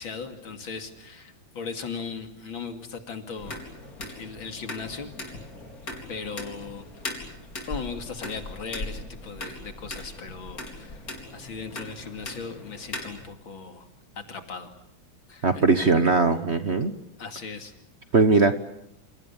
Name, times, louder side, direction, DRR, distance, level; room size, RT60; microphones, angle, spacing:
voice 1, 0.0-3.6 4.2-5.1 6.1-7.1 7.7-11.0 11.3-13.9 14.2-14.7 15.3-15.6 16.8-16.9 17.2-17.7, left 5 dB, 75° left, 6 dB, 3.3 m, -38 dB
sound 1, 3.4-13.3, left 2 dB, 45° left, 4.8 m, -39 dB
voice 2, 15.4-16.9 18.1-18.6, right 4 dB, 40° right, 10 dB, 1.2 m, -20 dB
28.5 x 27.5 x 7.2 m, 0.80 s
omnidirectional pair, 2.2 m